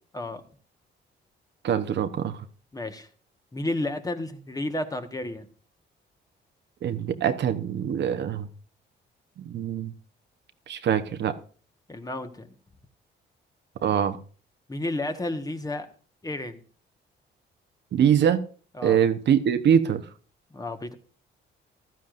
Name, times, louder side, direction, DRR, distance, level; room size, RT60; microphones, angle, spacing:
voice 1, 1.6-2.5 6.8-8.5 9.4-9.9 10.7-11.3 13.8-14.2 17.9-18.4 18.8-20.1, right 8 dB, 60° right, 10 dB, 0.9 m, -23 dB
voice 2, 2.7-3.1 3.5-5.5 11.9-12.5 14.7-15.9 16.2-16.6 18.8-19.0 20.5-20.9, left 2 dB, 20° left, 7 dB, 1.4 m, -32 dB
15.0 x 12.5 x 2.6 m, 0.40 s
cardioid pair, 90°, 20 cm